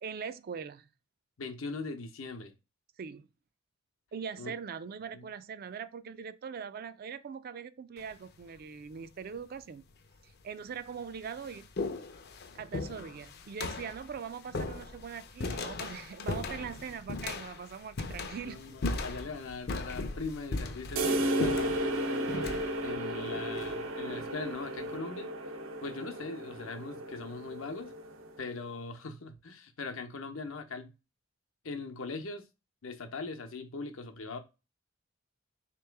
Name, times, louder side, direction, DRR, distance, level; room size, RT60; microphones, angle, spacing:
voice 1, 0.0-0.9 3.0-3.3 4.1-9.9 10.2-11.7 12.5-18.7, right 6 dB, 45° right, 0.3 m, -41 dB
voice 2, 1.4-2.5 4.4-4.5 5.1-5.3 18.4-22.3 22.8-25.3 25.8-27.9 28.4-30.9 31.6-32.4 32.8-34.4, left 3 dB, 80° left, 0.8 m, -40 dB
sound 1, 8.0-8.4 9.4-9.5 10.3-10.4 10.8-24.3, left 3 dB, 50° left, 0.6 m, -38 dB
sound 2, 21.0-28.5, right 1 dB, 75° right, 0.7 m, -34 dB
3.8 x 3.0 x 3.3 m
head